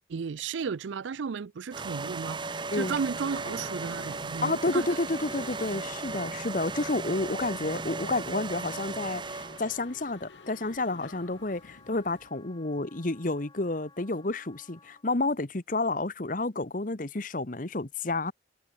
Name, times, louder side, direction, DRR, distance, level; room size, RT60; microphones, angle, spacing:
voice 1, 0.1-4.9, right 6 dB, 85° right, 0.4 m, -34 dB
sound 1, 1.7-9.8, right 3 dB, 25° right, 0.9 m, -36 dB
Mechanisms, 3.3-12.3, left 3 dB, 75° left, 1.3 m, -51 dB
Wind instrument woodwind instrument, 3.8-15.1, left 4 dB, 25° left, 5.8 m, -57 dB
voice 2, 4.4-18.3, left 2 dB, 45° left, 1.2 m, -30 dB
head